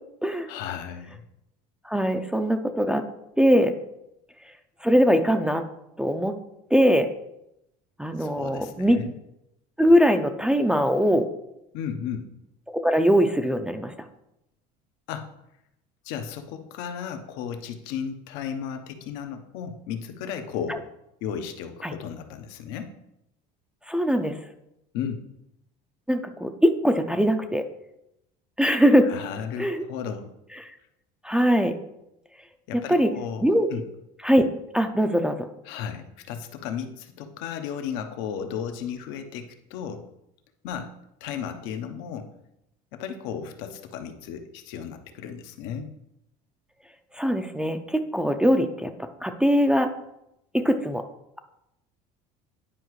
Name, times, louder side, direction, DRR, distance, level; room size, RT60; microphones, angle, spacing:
voice 1, 0.5-1.2 8.2-9.1 11.7-12.3 15.1-15.3 16.0-20.8 21.2-22.9 24.9-25.2 29.0-30.3 32.7-33.8 35.6-40.0 40.6-40.9 41.2-42.3 42.9-45.9, left 7 dB, 75° left, 7 dB, 0.9 m, -34 dB
voice 2, 1.9-3.0 3.4-3.7 4.8-5.6 6.0-6.3 6.7-7.1 8.0-9.0 9.8-11.3 12.7-13.9 21.8-21.9 23.9-24.4 26.1-27.6 28.6-29.1 29.6-29.8 31.2-31.8 32.7-33.1 33.4-33.7 34.2-34.5 34.7-35.5 47.2-49.9 50.5-51.0, equal, 5° right, 6 dB, 0.5 m, -21 dB
10.0 x 4.8 x 3.1 m, 0.84 s
supercardioid pair, 110°, 19 cm